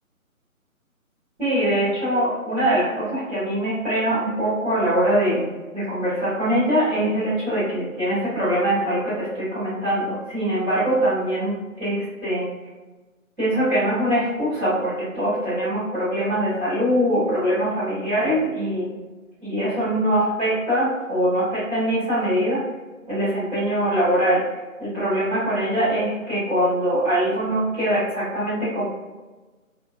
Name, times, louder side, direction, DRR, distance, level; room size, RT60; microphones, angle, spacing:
voice 1, 1.4-5.5 5.7-12.5 13.4-19.0 19.4-22.6 23.1-24.5 24.8-28.8, right 1 dB, 5° right, -14 dB, 1.2 m, -23 dB
3.4 x 2.2 x 2.3 m, 1.2 s
figure-of-eight pair, 145°, 42 cm